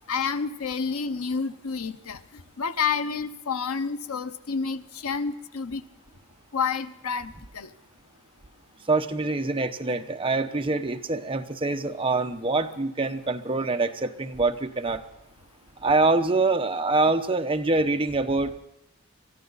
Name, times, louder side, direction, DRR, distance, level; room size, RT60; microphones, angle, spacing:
voice 1, 0.1-2.2 2.6-5.8 6.5-7.7, left 5 dB, 80° left, 11 dB, 0.8 m, -29 dB
voice 2, 8.9-15.0 15.8-18.6, right 3 dB, 25° right, 6 dB, 0.8 m, -25 dB
23.0 x 14.0 x 4.0 m, 0.83 s
head